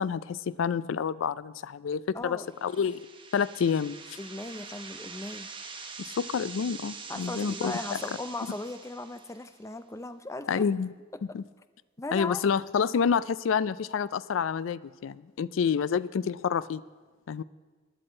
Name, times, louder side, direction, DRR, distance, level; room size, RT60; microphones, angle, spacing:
voice 1, 0.0-3.0 3.3-4.0 6.0-8.0 10.5-10.9 11.3-11.4 12.1-16.8 17.3-17.4, left 6 dB, 80° left, 18 dB, 0.4 m, -28 dB
voice 2, 2.1-2.5 4.2-5.5 7.1-10.6 11.1-11.4 12.0-12.4, left 2 dB, 15° left, 11 dB, 0.4 m, -37 dB
sound 1, 2.5-9.5, right 5 dB, 25° right, 1.0 m, -44 dB
15.5 x 10.5 x 4.4 m, 1.3 s
head